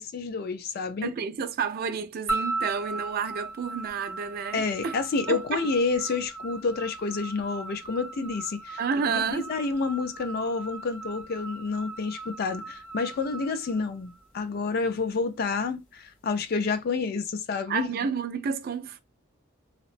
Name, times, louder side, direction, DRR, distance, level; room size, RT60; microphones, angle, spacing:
voice 1, 0.0-1.1 4.5-8.8 9.0-17.9, left 4 dB, 50° left, 0.4 m, -29 dB
voice 2, 1.0-5.0 5.3-5.6 8.8-9.5 17.7-19.0, right 6 dB, 50° right, 0.3 m, -30 dB
sound 1, 2.3-14.6, right 3 dB, 85° left, 1.0 m, -38 dB
2.7 x 2.1 x 2.4 m
head